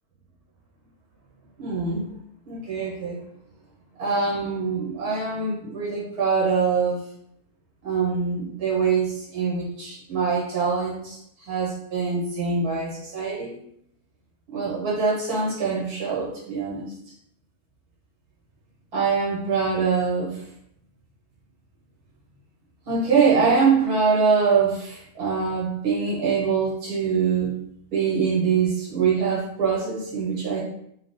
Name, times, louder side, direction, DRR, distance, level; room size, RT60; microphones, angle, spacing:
voice 1, 1.6-2.1 2.5-3.2 4.0-7.0 7.8-13.6 14.5-16.9 18.9-20.4 22.8-27.5 27.9-30.6, right 5 dB, 80° right, -4 dB, 1.5 m, -24 dB
3.2 x 2.0 x 4.0 m, 0.73 s
omnidirectional pair, 1.6 m